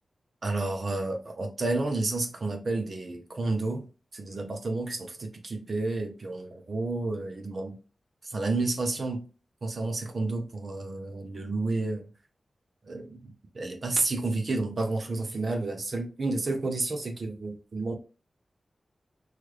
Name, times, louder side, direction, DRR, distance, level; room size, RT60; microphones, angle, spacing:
voice 1, 0.4-3.9 4.1-7.8 8.2-9.3 9.6-12.1 12.8-17.9, right 2 dB, 55° right, 0.6 m, -31 dB
3.1 x 2.3 x 3.2 m
cardioid pair, 65°, 0 cm